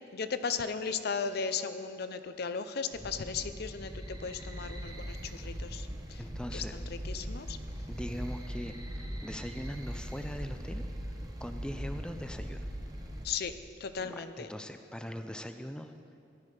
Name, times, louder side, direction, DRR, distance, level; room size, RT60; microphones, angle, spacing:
voice 1, 0.1-6.2 6.5-7.6 13.2-14.5, left 5 dB, 60° left, 11 dB, 0.5 m, -36 dB
sound 1, 2.9-13.2, equal, 20° right, 1.0 m, -40 dB
voice 2, 6.2-6.8 7.9-10.8 11.4-12.7 14.0-15.9, equal, 5° left, 7 dB, 0.4 m, -41 dB
14.5 x 10.5 x 4.9 m, 2.6 s
head